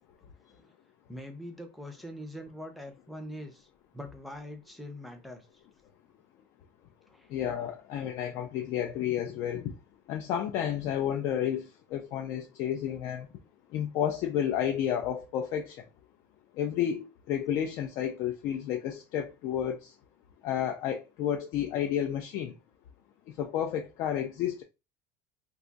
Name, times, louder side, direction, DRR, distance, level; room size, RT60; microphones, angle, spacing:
voice 1, 1.1-3.7 3.9-5.5 7.1-7.3, equal, ahead, 0.5 m, -43 dB
voice 2, 7.3-9.7 10.1-13.3 13.7-15.8 16.6-19.9 20.4-22.5 23.4-24.6, left 10 dB, 50° left, 0.4 m, -31 dB
2.5 x 2.3 x 3.9 m
cardioid pair, 155°, 7 cm